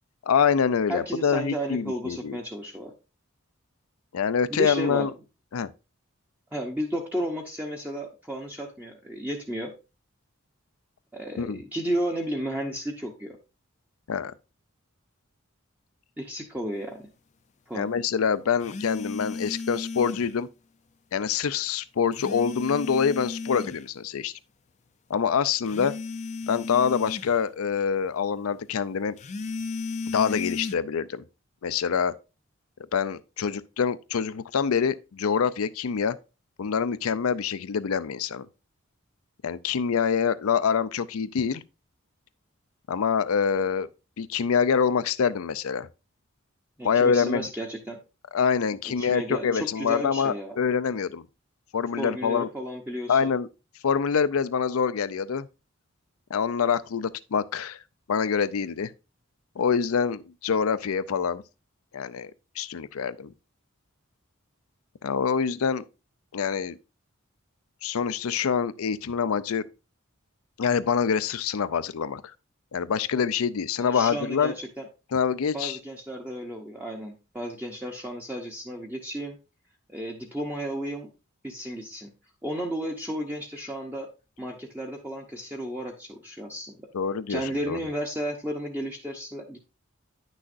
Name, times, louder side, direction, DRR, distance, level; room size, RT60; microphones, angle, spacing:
voice 1, 0.3-2.4 4.1-5.1 5.5-5.7 11.4-11.6 14.1-14.3 17.7-20.5 21.1-24.3 25.1-25.9 26.5-29.2 30.1-31.2 31.6-32.1 32.9-36.2 36.6-38.5 39.4-41.6 42.9-43.9 44.2-45.9 46.8-47.5 48.3-51.2 51.7-52.5 53.1-53.5 53.8-55.5 56.3-57.8 58.1-58.9 59.6-61.4 61.9-62.3 62.6-63.3 65.0-65.8 66.3-66.8 67.8-69.7 70.6-72.2 72.7-74.5 75.1-75.8 86.9-87.8, left 6 dB, 90° left, 0.5 m, -25 dB
voice 2, 0.9-2.9 4.5-5.1 6.5-9.7 11.1-13.4 16.2-17.1 17.7-17.9 46.8-48.0 49.0-50.6 52.0-53.3 73.8-74.8 75.5-79.4 79.9-81.1 81.4-82.1 82.4-84.1 84.4-86.7 87.3-89.6, equal, 10° right, 0.7 m, -33 dB
sound 1, 18.6-20.4 22.1-23.8 25.7-27.4 29.2-30.8, left 4 dB, 35° left, 0.4 m, -34 dB
9.7 x 6.2 x 2.5 m
head